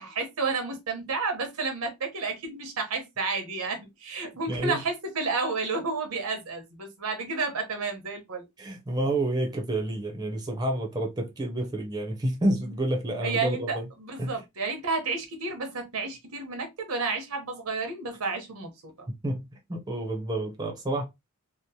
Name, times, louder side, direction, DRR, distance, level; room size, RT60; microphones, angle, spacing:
voice 1, 0.0-8.5 13.2-19.1, right 4 dB, 90° right, 0.9 m, -31 dB
voice 2, 4.5-4.8 8.6-13.9 14.2-14.3 19.2-21.0, right 1 dB, 20° right, 0.6 m, -29 dB
2.9 x 2.0 x 2.7 m
head